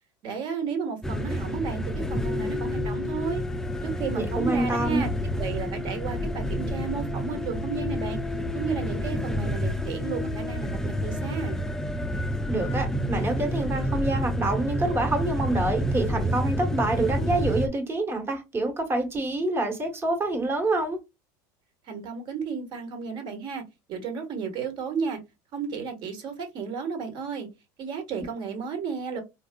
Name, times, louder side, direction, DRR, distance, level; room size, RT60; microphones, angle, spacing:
voice 1, 0.2-3.4 3.8-5.1 5.4-8.2 8.5-11.6 21.8-23.6 23.9-25.2 25.5-27.5 27.8-29.2, right 6 dB, 50° right, 1.4 m, -33 dB
sound 1, 1.0-17.7, equal, 5° left, 0.3 m, -29 dB
voice 2, 4.1-5.1 12.5-21.0, right 2 dB, 25° right, 1.2 m, -27 dB
4.6 x 2.3 x 2.2 m
supercardioid pair, 120°, 10 cm